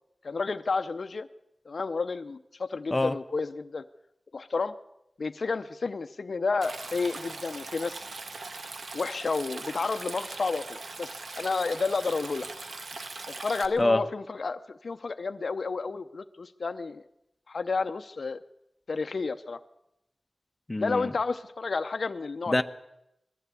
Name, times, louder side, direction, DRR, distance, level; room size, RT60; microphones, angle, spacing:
voice 1, 0.2-1.3 1.7-3.8 4.3-4.7 5.2-8.1 8.9-12.5 13.3-17.0 17.5-18.4 18.9-19.6 20.8-22.5, left 4 dB, 70° left, 10 dB, 0.7 m, -31 dB
Stream, 6.6-13.7, right 3 dB, 75° right, 1.5 m, -40 dB
voice 2, 20.7-21.1 22.5-22.6, left 2 dB, 25° left, 7 dB, 1.0 m, -25 dB
20.5 x 15.0 x 8.4 m, 0.85 s
wide cardioid pair, 95°, 0 cm